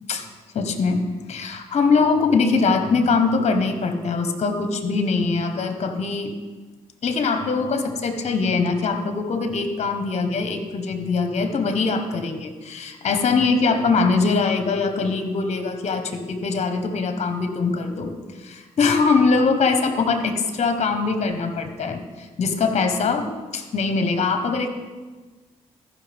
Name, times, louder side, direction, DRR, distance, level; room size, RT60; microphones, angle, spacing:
voice 1, 0.5-6.3 7.0-18.1 18.4-24.7, left 4 dB, 55° left, 8 dB, 1.2 m, -22 dB
14.5 x 5.7 x 3.5 m, 1.3 s
supercardioid pair, 55°, 13 cm